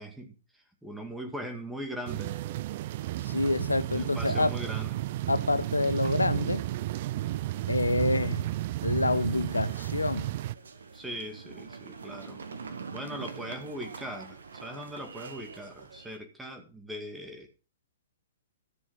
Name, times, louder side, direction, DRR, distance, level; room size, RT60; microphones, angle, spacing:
voice 1, 0.0-2.4 3.9-5.0 10.9-12.4 12.9-17.5, equal, 5° right, 2.2 m, -40 dB
sound 1, 2.1-10.5, right 15 dB, 50° right, 0.4 m, -32 dB
voice 2, 3.2-4.5 5.3-6.7 7.7-8.5 8.8-10.3, left 2 dB, 85° left, 0.5 m, -27 dB
sound 2, 9.1-16.2, right 5 dB, 70° right, 1.5 m, -45 dB
13.5 x 7.2 x 4.2 m
figure-of-eight pair, 105°, 0 cm